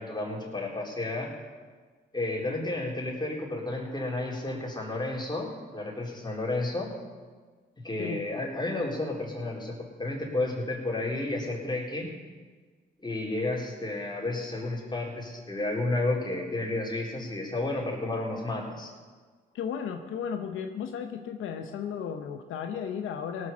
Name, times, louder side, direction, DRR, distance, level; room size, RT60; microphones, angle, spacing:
voice 1, 0.0-1.3 2.1-6.9 7.8-12.1 13.0-18.9, left 2 dB, 20° left, -2 dB, 4.0 m, -31 dB
voice 2, 19.5-23.5, left 7 dB, 85° left, 6 dB, 0.8 m, -34 dB
17.5 x 6.5 x 7.2 m, 1.5 s
supercardioid pair, 55°, 20 cm